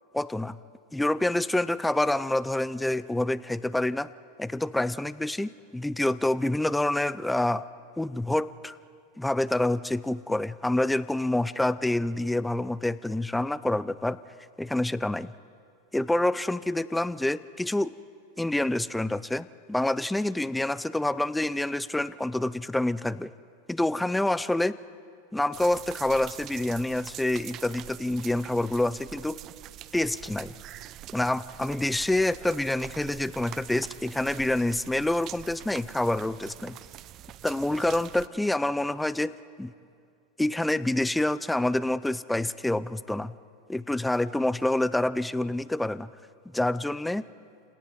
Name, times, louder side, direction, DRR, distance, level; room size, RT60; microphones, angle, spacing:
voice 1, 0.1-0.6 0.9-4.1 4.4-7.6 8.0-8.8 9.2-14.2 14.6-15.3 15.9-18.0 18.4-23.3 23.7-24.8 25.3-29.4 29.9-30.5 31.1-36.8 37.4-39.7 40.4-43.3 43.7-46.1 46.5-47.2, left 1 dB, 5° left, 17 dB, 0.5 m, -27 dB
sound 1, 25.5-38.3, right 13 dB, 40° right, 0.6 m, -44 dB
29.0 x 18.0 x 5.3 m, 2.4 s
hypercardioid pair, 100°, 0 cm